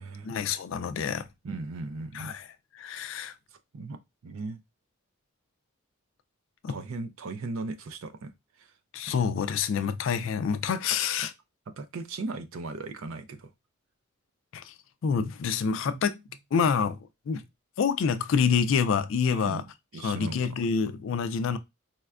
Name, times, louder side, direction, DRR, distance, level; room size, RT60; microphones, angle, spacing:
voice 1, 0.2-1.3 2.1-2.5 2.8-3.3 6.6-6.8 8.9-11.3 14.5-14.7 15.0-16.2 16.5-17.0 17.3-17.4 17.8-19.6 20.0-21.6, left 6 dB, 60° left, 0.3 m, -27 dB
voice 2, 1.4-2.4 3.7-4.6 6.7-8.3 8.6-8.7 11.8-13.5 15.9-16.0 19.3-19.7 19.9-20.7, right 3 dB, 70° right, 0.4 m, -37 dB
4.2 x 2.1 x 2.4 m
head